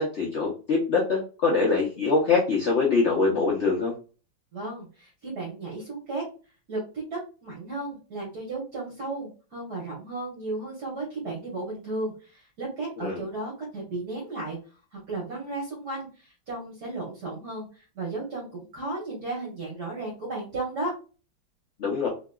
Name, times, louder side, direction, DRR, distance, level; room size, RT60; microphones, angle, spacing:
voice 1, 0.0-3.9 13.0-13.2 21.8-22.1, left 4 dB, 80° left, -2 dB, 0.6 m, -24 dB
voice 2, 4.5-6.2 6.7-6.8 7.1-14.6 14.9-17.7 17.9-20.9, right 2 dB, 60° right, -4 dB, 1.5 m, -34 dB
3.4 x 2.8 x 2.2 m, 0.36 s
omnidirectional pair, 2.1 m